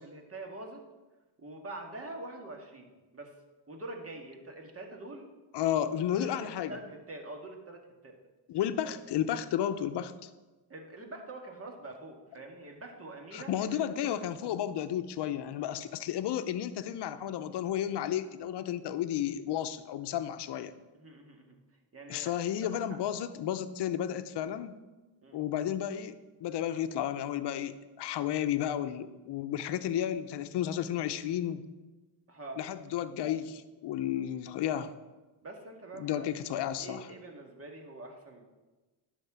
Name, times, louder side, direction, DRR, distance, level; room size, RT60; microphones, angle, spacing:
voice 1, 0.0-0.8 1.4-2.9 3.1-3.3 3.7-5.3 5.9-8.2 8.8-8.9 10.7-14.6 20.9-21.6 21.9-22.3 22.7-23.0 25.2-25.4 32.3-32.6 35.4-36.3 36.8-38.5, right 2 dB, 30° right, 2 dB, 2.0 m, -45 dB
voice 2, 5.5-6.8 8.5-10.3 13.3-20.7 22.1-24.8 25.3-31.6 32.6-34.9 36.0-37.1, left 10 dB, 65° left, 11 dB, 0.8 m, -32 dB
10.5 x 4.5 x 7.4 m, 1.2 s
cardioid pair, 85°, 44 cm